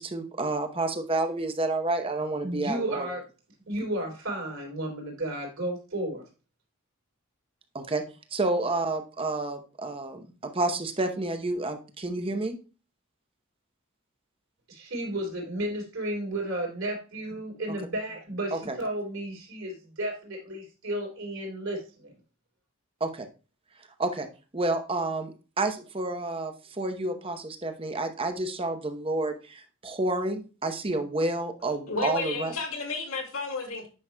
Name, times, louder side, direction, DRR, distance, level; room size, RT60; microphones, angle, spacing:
voice 1, 0.0-3.1 7.7-8.0 8.3-12.6 18.5-18.8 23.0-23.3 24.0-24.3 24.5-25.3 25.6-32.5, right 2 dB, 25° right, 0.8 m, -29 dB
voice 2, 2.4-3.2 3.7-6.2 14.7-22.1, right 1 dB, 70° right, 3.5 m, -33 dB
voice 3, 31.9-33.9, left 3 dB, 80° left, 2.1 m, -32 dB
9.7 x 5.9 x 2.2 m
head